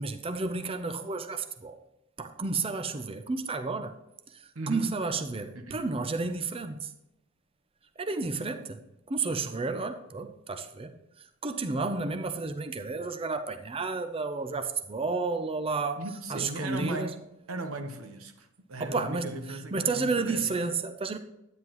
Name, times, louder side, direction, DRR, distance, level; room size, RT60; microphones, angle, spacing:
voice 1, 0.0-1.8 2.2-4.0 4.3-4.4 4.7-6.9 8.0-16.0 16.3-17.1 18.8-21.2, right 3 dB, 25° right, 0.6 m, -32 dB
voice 2, 4.5-5.0 5.6-5.8 16.0-17.2 17.5-20.7, right 2 dB, 85° right, 1.1 m, -37 dB
11.0 x 9.5 x 3.0 m
head